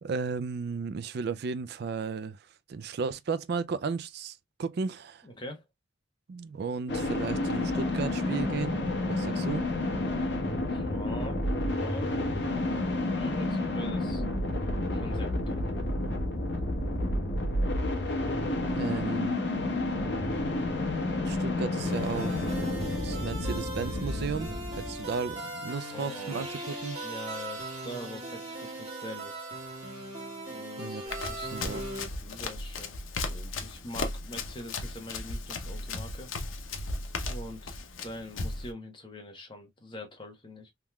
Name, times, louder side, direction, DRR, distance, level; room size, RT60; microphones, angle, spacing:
voice 1, 0.0-2.4 2.7-5.3 6.3-8.8 9.1-9.7 18.7-19.4 21.2-22.4 23.0-27.0 30.8-31.0 31.5-31.8, right 5 dB, 55° right, 0.4 m, -34 dB
voice 2, 5.2-5.6 10.7-12.1 12.7-14.2 14.9-15.6 25.9-26.6 27.0-29.5 30.5-31.5 32.2-33.0 33.3-36.3 37.3-37.7 38.0-40.7, left 1 dB, 25° left, 1.1 m, -43 dB
sound 1, 6.9-25.4, left 2 dB, 60° left, 1.2 m, -30 dB
sound 2, 21.8-32.1, right 1 dB, 35° right, 1.5 m, -39 dB
Run, 31.1-38.7, left 3 dB, 90° left, 0.8 m, -36 dB
3.6 x 3.0 x 2.2 m
head